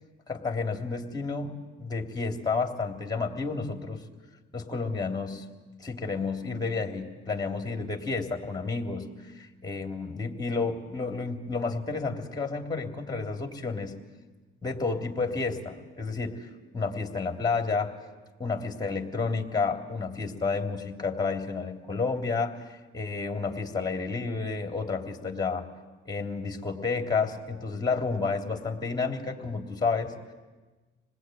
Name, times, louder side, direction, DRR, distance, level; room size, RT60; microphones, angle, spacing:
voice 1, 0.3-1.5 1.8-4.0 4.5-5.4 5.8-14.0 14.6-17.9 18.4-25.7 26.0-30.3, left 4 dB, 20° left, 3 dB, 3.1 m, -31 dB
27.0 x 19.5 x 9.3 m, 1.2 s
cardioid pair, 90°, 20 cm